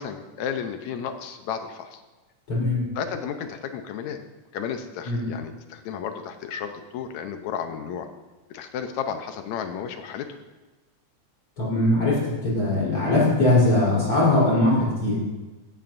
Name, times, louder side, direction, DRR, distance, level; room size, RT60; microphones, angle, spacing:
voice 1, 0.0-2.0 3.0-4.2 4.5-8.1 8.5-10.4, left 7 dB, 75° left, 7 dB, 2.1 m, -33 dB
voice 2, 2.5-2.9 5.0-5.2 11.6-15.2, left 2 dB, 45° left, -7 dB, 4.8 m, -21 dB
16.5 x 12.5 x 2.6 m, 1.2 s
omnidirectional pair, 3.5 m